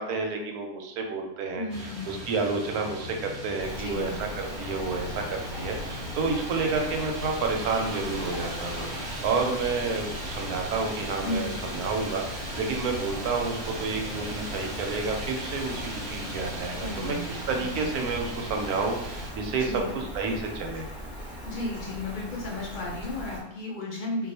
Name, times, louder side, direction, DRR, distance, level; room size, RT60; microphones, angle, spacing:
voice 1, 0.0-20.9, right 4 dB, 85° right, 2 dB, 1.1 m, -30 dB
voice 2, 1.5-2.2 3.8-4.3 11.2-11.7 16.8-18.0 19.5-20.0 21.5-24.3, left 2 dB, 65° left, -3 dB, 0.4 m, -34 dB
sound 1, 1.7-19.3, equal, 65° right, 0.4 m, -37 dB
Rain, 3.6-23.4, equal, 25° right, 0.8 m, -40 dB
2.4 x 2.3 x 4.0 m, 0.88 s
omnidirectional pair, 1.6 m